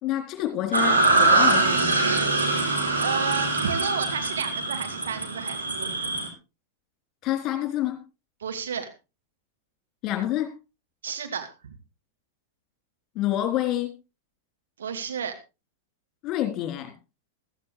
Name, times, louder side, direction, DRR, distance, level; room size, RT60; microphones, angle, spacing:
voice 1, 0.0-1.9 7.2-8.0 10.0-10.5 13.2-13.9 16.2-16.9, left 13 dB, 35° left, 6 dB, 3.6 m, -27 dB
sound 1, 0.7-6.3, right 2 dB, 80° right, 3.7 m, -23 dB
voice 2, 3.0-5.9 8.4-8.9 11.0-11.8 14.8-15.3, right 7 dB, 65° right, 5 dB, 2.4 m, -31 dB
15.5 x 13.5 x 3.3 m, 0.29 s
figure-of-eight pair, 90°, 0 cm